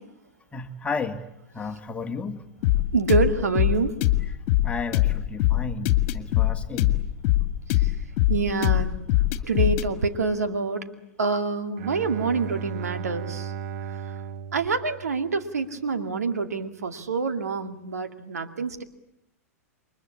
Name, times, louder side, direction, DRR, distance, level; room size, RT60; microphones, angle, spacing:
voice 1, 0.5-1.3 1.5-2.4 4.6-6.9, left 4 dB, 15° left, 6 dB, 2.2 m, -33 dB
sound 1, 2.6-9.9, left 16 dB, 45° left, 2.0 m, -22 dB
voice 2, 2.9-3.9 8.3-9.0 9.4-10.9 11.2-13.5 14.5-18.8, right 4 dB, 75° right, 7 dB, 2.4 m, -26 dB
Bowed string instrument, 11.8-15.7, right 7 dB, 50° right, 1.3 m, -36 dB
29.0 x 23.5 x 8.6 m, 0.83 s
figure-of-eight pair, 100°, 8 cm